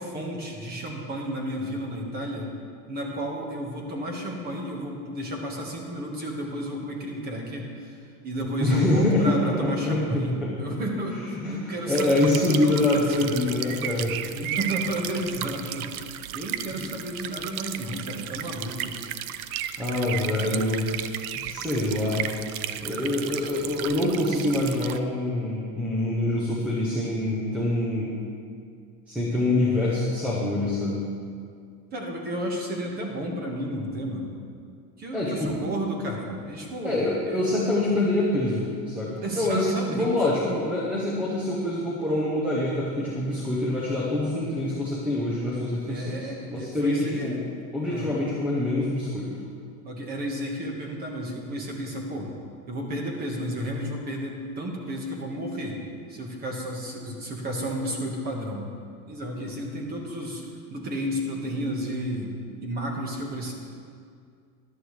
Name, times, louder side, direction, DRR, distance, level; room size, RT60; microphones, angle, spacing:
voice 1, 0.0-2.5 2.9-13.4 14.4-19.0 31.9-34.4 35.0-37.4 39.1-40.3 45.9-47.4 47.9-48.1 49.8-52.3 52.7-55.8 56.1-58.7 59.1-60.4 60.7-62.3 62.6-63.5, equal, 20° right, 1 dB, 1.3 m, -32 dB
voice 2, 8.6-10.5 11.3-14.2 16.7-16.9 19.8-20.8 21.3-22.3 22.8-28.1 29.1-31.0 35.1-35.5 36.8-47.4 47.7-49.3, left 1 dB, 5° right, -7 dB, 0.4 m, -25 dB
sound 1, 11.9-25.0, right 11 dB, 65° right, 0.6 m, -34 dB
13.5 x 11.5 x 3.2 m, 2.2 s
supercardioid pair, 165°, 48 cm